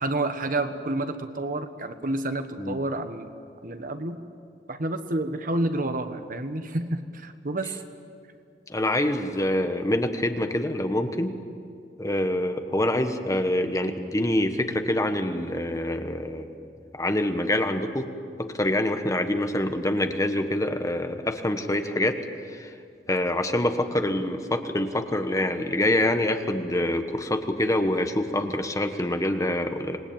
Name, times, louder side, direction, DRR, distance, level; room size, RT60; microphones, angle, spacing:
voice 1, 0.0-3.3 3.6-4.2 4.7-7.7, right 2 dB, 50° right, 8 dB, 1.4 m, -29 dB
voice 2, 8.7-11.4 12.0-16.5 16.9-18.1 18.4-22.2 22.5-22.7 23.1-30.0, left 1 dB, 20° left, 7 dB, 1.3 m, -26 dB
26.5 x 20.0 x 8.9 m, 2.3 s
head